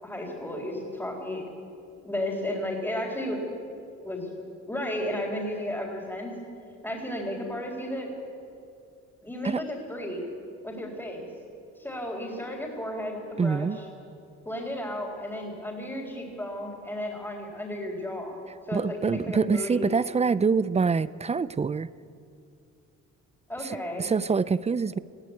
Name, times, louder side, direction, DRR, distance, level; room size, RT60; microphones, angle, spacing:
voice 1, 0.0-1.4 2.0-3.4 4.0-4.3 4.7-6.3 6.8-8.1 9.2-10.2 10.6-11.3 11.8-13.7 14.4-18.4 18.7-19.9 23.5-24.1, left 1 dB, 10° left, -5 dB, 4.2 m, -33 dB
voice 2, 13.4-13.8 18.7-21.9 23.6-25.0, right 5 dB, 20° right, 18 dB, 0.5 m, -25 dB
20.5 x 14.0 x 9.3 m, 2.6 s
cardioid pair, 90°, 30 cm